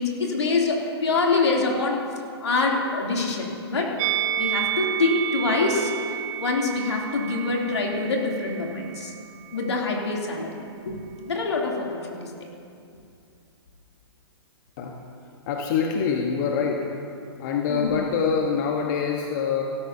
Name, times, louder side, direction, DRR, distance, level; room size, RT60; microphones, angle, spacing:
voice 1, 0.0-2.0 2.4-4.0 4.4-5.9 6.4-9.1 9.5-11.0 11.2-12.3 17.7-18.0, left 3 dB, 80° left, -2 dB, 2.9 m, -25 dB
Musical instrument, 4.0-9.2 9.5-9.7, right 11 dB, 40° right, 0.7 m, -30 dB
voice 2, 15.5-16.9 17.4-19.6, left 6 dB, 45° left, 1 dB, 1.2 m, -25 dB
17.0 x 13.0 x 2.8 m, 2.4 s
hypercardioid pair, 130°, 14 cm